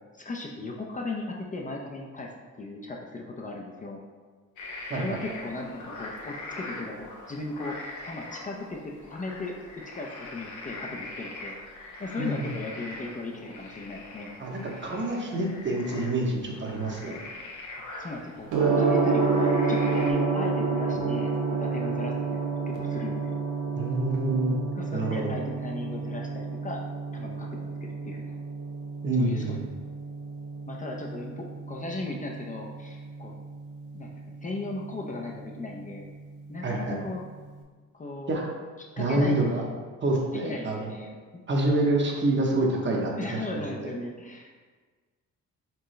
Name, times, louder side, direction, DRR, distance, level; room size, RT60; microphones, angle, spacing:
voice 1, 0.2-2.3 2.6-4.0 4.9-7.8 8.0-9.5 9.9-11.6 12.0-14.3 17.8-18.5 18.8-23.4 24.7-26.8 27.1-28.4 29.2-29.6 30.7-33.4 33.9-34.1 34.4-36.1 36.5-37.2 37.9-38.3 39.0-39.8 40.3-41.4 43.2-44.7, left 2 dB, 25° left, 0 dB, 0.5 m, -37 dB
sound 1, 4.6-20.1, left 2 dB, 85° left, 1.0 m, -42 dB
voice 2, 12.2-12.5 14.4-17.2 23.7-24.6 24.9-25.3 29.0-29.7 36.6-37.0 38.3-38.5 39.0-39.6 40.0-40.9 41.5-43.6, right 2 dB, 40° right, -1 dB, 1.0 m, -27 dB
Gong, 18.5-37.5, right 4 dB, 90° right, 0.9 m, -30 dB
4.5 x 3.6 x 3.2 m, 1.4 s
cardioid pair, 90°, 30 cm